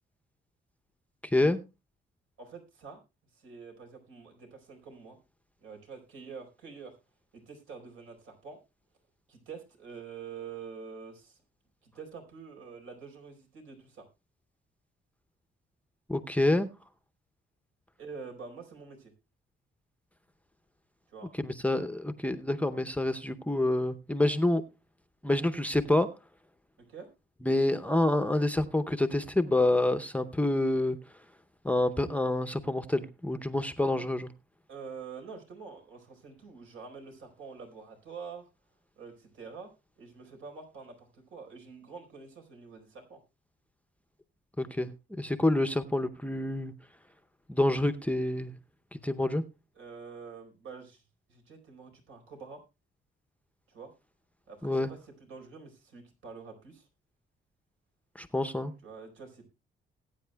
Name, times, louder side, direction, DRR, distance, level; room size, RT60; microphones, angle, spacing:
voice 1, 1.2-1.6 16.1-16.7 21.3-24.6 25.2-26.1 27.4-31.0 31.6-34.3 44.6-46.7 47.5-48.5 48.9-49.4 54.6-54.9 58.2-58.7, left 1 dB, 5° left, 9 dB, 0.6 m, -27 dB
voice 2, 2.4-3.0 3.3-5.2 5.6-7.0 7.3-8.6 9.3-11.4 11.8-14.1 18.0-19.1 21.1-21.3 26.9-27.1 34.7-38.5 39.0-39.7 40.0-43.2 49.8-51.0 51.3-52.6 53.7-53.9 54.5-56.9 58.8-59.5, right 5 dB, 80° right, 3 dB, 4.3 m, -46 dB
20.0 x 9.0 x 2.2 m, 0.26 s
cardioid pair, 120°, 21 cm